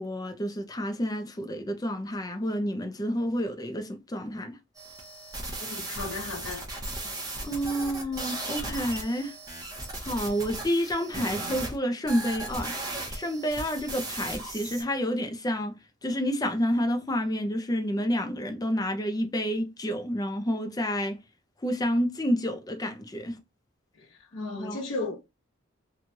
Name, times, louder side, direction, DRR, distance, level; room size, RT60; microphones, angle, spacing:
voice 1, 0.0-4.6 7.4-9.4 10.0-12.7 13.1-21.2 21.6-23.4 24.6-24.8, equal, 20° left, 0.5 m, -29 dB
sound 1, 4.8-11.8 12.1-14.8, right 2 dB, 20° right, 0.8 m, -36 dB
voice 2, 5.6-6.6 24.0-25.3, left 3 dB, 85° left, 1.0 m, -35 dB
3.1 x 2.3 x 2.6 m
head